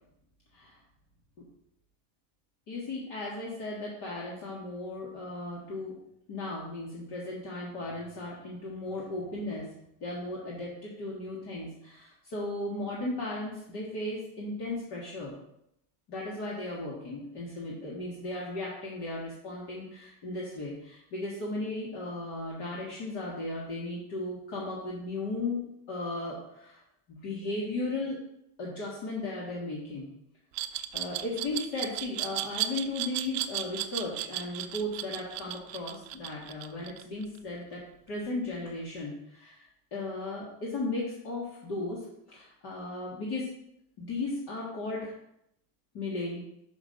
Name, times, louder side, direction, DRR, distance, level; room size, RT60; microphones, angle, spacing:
voice 1, 2.7-6.0 6.3-9.7 10.0-15.3 16.1-26.8 27.1-28.2 28.6-30.1 30.9-43.5 44.0-45.1 45.9-46.4, left 2 dB, 55° left, -4 dB, 1.9 m, -36 dB
Glass, 30.5-37.4, right 14 dB, 60° right, 0.7 m, -34 dB
5.8 x 5.8 x 5.3 m, 0.78 s
cardioid pair, 160°, 48 cm